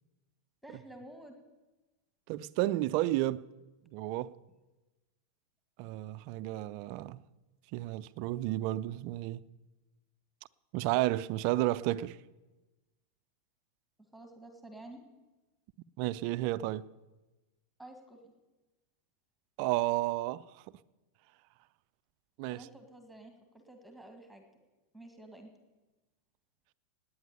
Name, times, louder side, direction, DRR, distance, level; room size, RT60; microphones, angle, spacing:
voice 1, 0.6-1.3 14.1-15.0 17.8-18.3 22.5-24.4 24.9-25.5, right 1 dB, ahead, 1.8 m, -51 dB
voice 2, 2.3-3.4 3.9-4.3 5.8-7.2 7.7-9.4 10.7-12.2 16.0-16.9 19.6-20.6 22.4-22.7, right 16 dB, 45° right, 0.4 m, -32 dB
18.5 x 9.5 x 6.7 m
figure-of-eight pair, 90°, 0 cm